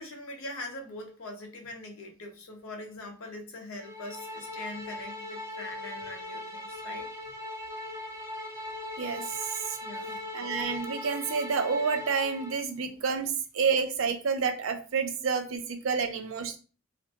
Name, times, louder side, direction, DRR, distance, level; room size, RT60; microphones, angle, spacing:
voice 1, 0.0-7.1 9.8-10.2, left 2 dB, 85° left, 0.7 m, -42 dB
sound 1, 3.8-12.6, left 1 dB, 15° right, 0.5 m, -39 dB
voice 2, 9.0-9.8 10.3-16.6, right 5 dB, 70° right, 0.5 m, -29 dB
2.5 x 2.1 x 2.7 m
head